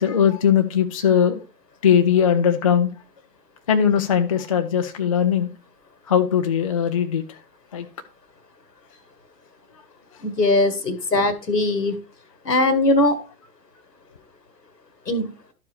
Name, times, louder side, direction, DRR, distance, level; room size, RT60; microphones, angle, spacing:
voice 1, 0.0-1.4 1.8-2.9 3.7-5.5 6.1-7.2 7.7-7.9, left 8 dB, 25° left, 0.3 m, -19 dB
voice 2, 10.2-11.9 12.4-13.2 15.1-15.3, left 2 dB, 85° left, 1.4 m, -20 dB
12.5 x 4.8 x 3.2 m
figure-of-eight pair, 105°, 48 cm